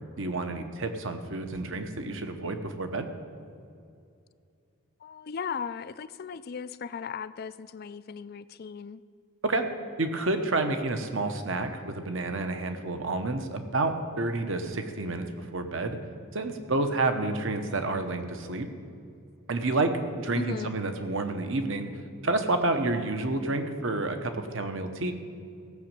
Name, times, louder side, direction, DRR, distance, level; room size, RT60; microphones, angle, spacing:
voice 1, 0.2-3.1 9.4-9.6 10.0-16.0 16.3-18.7 19.5-22.0 22.2-25.1, right 2 dB, 60° right, 7 dB, 1.0 m, -29 dB
voice 2, 5.0-9.0 20.4-20.7, left 6 dB, 45° left, 15 dB, 0.3 m, -37 dB
16.5 x 6.3 x 7.5 m, 2.5 s
head